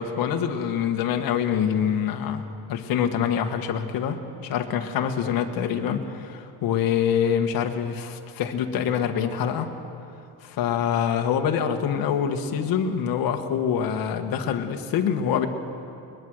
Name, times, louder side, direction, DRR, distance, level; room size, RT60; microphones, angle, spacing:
voice 1, 0.0-9.7 10.4-15.5, left 8 dB, 55° left, 5 dB, 1.6 m, -25 dB
21.5 x 21.5 x 6.4 m, 2.6 s
cardioid pair, 165°, 43 cm